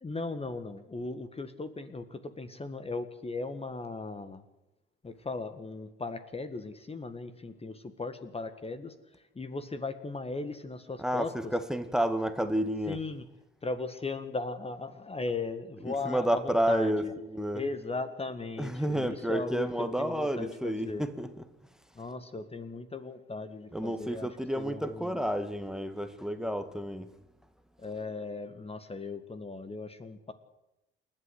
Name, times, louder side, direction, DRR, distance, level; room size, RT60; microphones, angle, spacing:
voice 1, 0.0-4.4 5.0-11.5 12.9-13.2 13.6-17.1 17.5-21.0 22.0-24.3 24.5-25.2 27.8-30.3, left 3 dB, 20° left, 10 dB, 1.8 m, -37 dB
voice 2, 11.0-13.0 15.8-17.6 18.6-21.3 23.7-27.1, equal, ahead, 10 dB, 1.9 m, -30 dB
29.0 x 12.5 x 8.1 m, 0.94 s
figure-of-eight pair, 55°, 30 cm